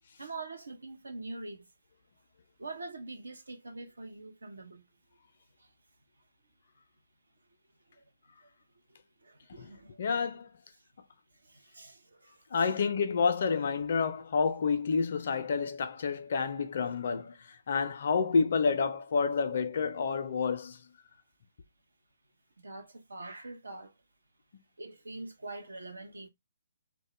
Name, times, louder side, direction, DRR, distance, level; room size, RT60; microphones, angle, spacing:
voice 1, 0.2-1.7 2.6-4.8 5.6-5.7 7.9-8.0 9.2-10.0 11.3-12.8 22.6-23.9 24.8-26.3, right 2 dB, 85° right, 0.6 m, -44 dB
voice 2, 10.0-10.5 12.5-20.8, left 5 dB, 55° left, 0.4 m, -29 dB
2.1 x 2.0 x 2.9 m
figure-of-eight pair, 135°, 0 cm